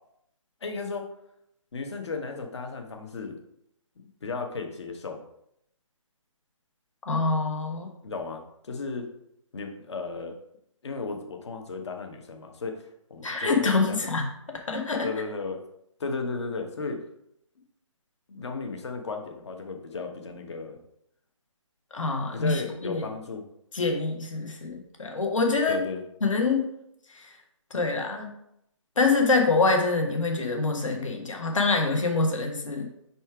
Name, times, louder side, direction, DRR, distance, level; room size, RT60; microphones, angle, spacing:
voice 1, 0.6-1.1 1.7-3.4 4.2-5.2 8.0-9.1 9.5-10.3 10.8-14.1 15.0-15.6 16.0-17.0 18.3-20.8 22.3-23.4 25.7-26.0, left 4 dB, 55° left, 4 dB, 1.0 m, -34 dB
voice 2, 7.1-7.9 13.2-14.3 14.7-15.1 21.9-23.1 23.7-25.8 26.2-26.6 27.1-27.3 27.7-28.3 29.0-32.9, left 3 dB, 75° left, 3 dB, 1.3 m, -25 dB
4.7 x 4.2 x 4.7 m, 0.78 s
figure-of-eight pair, 150°, 17 cm